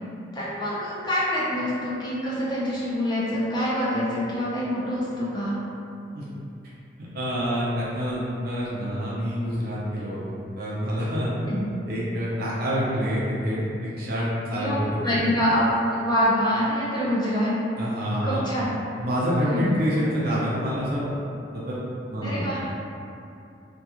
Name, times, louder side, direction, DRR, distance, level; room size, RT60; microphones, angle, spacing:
voice 1, 0.3-5.6 11.4-11.7 14.5-14.8 15.0-17.5 18.2-18.7 19.4-19.7 22.2-22.6, equal, 25° left, -8 dB, 0.6 m, -25 dB
voice 2, 7.1-10.2 10.6-11.3 11.9-13.6 14.0-15.2 17.8-18.5 19.0-21.2 21.5-21.8 22.1-22.5, equal, 55° right, -8 dB, 0.5 m, -27 dB
2.3 x 2.2 x 2.9 m, 2.6 s
head